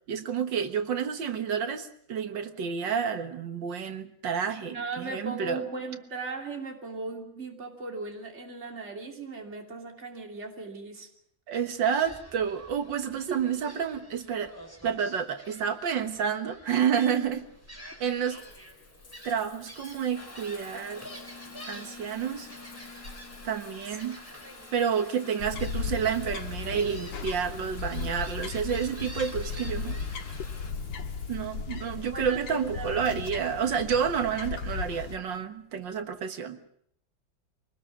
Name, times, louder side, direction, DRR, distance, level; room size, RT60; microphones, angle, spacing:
voice 1, 0.1-5.6 11.5-14.5 14.8-17.5 18.0-18.4 19.2-21.0 21.7-22.5 23.4-24.3 24.7-30.0 31.3-36.6, right 7 dB, 80° right, 8 dB, 2.1 m, -29 dB
voice 2, 4.7-11.1 13.3-13.4 31.8-33.1, right 3 dB, 35° right, 3 dB, 3.2 m, -37 dB
Gull seagull, 11.5-30.6, equal, 5° right, 4.0 m, -49 dB
Water tap faucet / Bathtub (filling or washing) / Trickle dribble, 17.2-36.1, left 3 dB, 70° left, 4.4 m, -50 dB
sound 1, 25.4-35.2, left 5 dB, 90° left, 2.3 m, -36 dB
24.0 x 19.0 x 7.2 m, 0.68 s
omnidirectional pair, 2.0 m